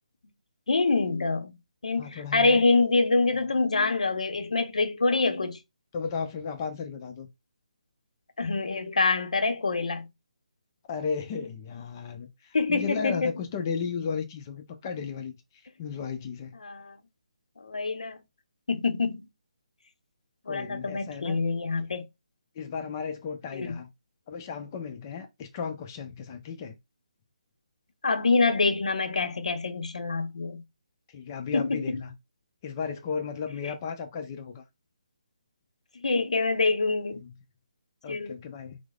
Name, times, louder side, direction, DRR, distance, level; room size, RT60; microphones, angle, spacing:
voice 1, 0.7-1.5 1.8-5.6 8.4-10.1 12.5-13.3 16.6-17.0 17.6-18.2 18.7-19.3 20.5-22.1 23.5-23.8 28.0-30.6 31.5-32.0 33.6-33.7 36.0-37.2 38.1-38.3, left 3 dB, 70° left, 0.6 m, -26 dB
voice 2, 2.0-2.6 5.9-7.3 10.9-15.3 15.8-16.6 20.5-21.4 22.6-23.9 24.3-26.8 31.1-32.1 32.6-34.6 37.1-37.3 38.0-38.8, left 6 dB, 30° left, 0.5 m, -34 dB
4.7 x 2.0 x 2.3 m
figure-of-eight pair, 150°, 4 cm